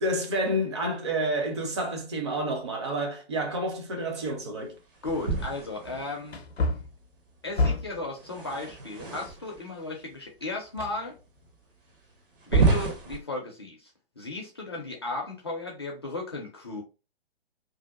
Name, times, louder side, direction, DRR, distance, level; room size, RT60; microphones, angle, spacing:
voice 1, 0.0-4.7, right 1 dB, 25° right, 0.5 m, -29 dB
Wood, 5.0-5.1 6.3-8.1 10.8-11.6 11.9-12.0, left 2 dB, 75° left, 0.6 m, -30 dB
voice 2, 5.0-6.4 7.4-11.2 12.5-13.9 14.2-16.8, left 2 dB, 25° left, 0.4 m, -35 dB
sound 1, 5.0-6.4 8.2-9.7 10.4-10.5 11.2-11.3 12.4-13.2, right 4 dB, 55° right, 0.8 m, -28 dB
2.6 x 2.1 x 2.4 m
figure-of-eight pair, 130°, 32 cm